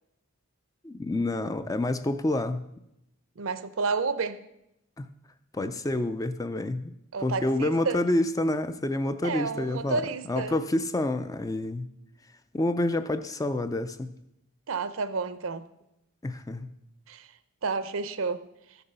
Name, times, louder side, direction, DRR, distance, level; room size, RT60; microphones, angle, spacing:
voice 1, 0.8-2.6 5.0-5.1 5.5-6.9 7.2-10.0 10.3-11.9 12.5-14.1 16.2-16.7, left 1 dB, 15° left, 0.3 m, -28 dB
voice 2, 3.4-4.4 7.1-8.0 9.2-10.5 14.7-15.7 17.1-17.3 17.6-18.4, right 4 dB, 70° right, 0.6 m, -30 dB
13.5 x 6.9 x 5.5 m
head